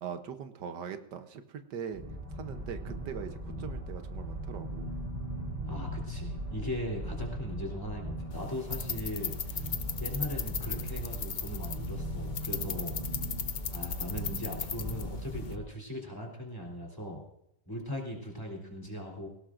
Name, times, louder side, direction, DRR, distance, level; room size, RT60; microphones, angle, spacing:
voice 1, 0.0-2.0 2.3-4.9 12.6-12.7, right 7 dB, 85° right, 8 dB, 1.5 m, -41 dB
sound 1, 1.9-15.6, right 1 dB, 30° right, 2.2 m, -39 dB
voice 2, 5.7-9.7 10.0-12.9 13.7-17.2 17.7-19.3, equal, 10° left, -1 dB, 3.1 m, -39 dB
sound 2, 8.3-15.6, left 6 dB, 85° left, 0.4 m, -38 dB
18.5 x 17.5 x 2.5 m, 0.83 s
omnidirectional pair, 1.8 m